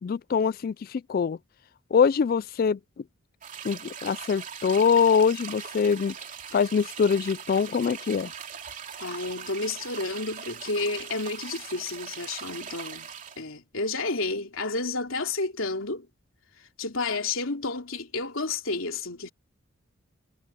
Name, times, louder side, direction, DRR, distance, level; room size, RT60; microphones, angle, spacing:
voice 1, 0.0-1.4 1.9-2.8 3.6-6.1 6.5-8.3, left 6 dB, 45° left, 0.3 m, -23 dB
sound 1, 3.4-13.4, right 7 dB, 40° right, 2.8 m, -40 dB
voice 2, 9.0-13.1 13.4-16.1 16.6-19.3, left 3 dB, 90° left, 3.0 m, -31 dB
head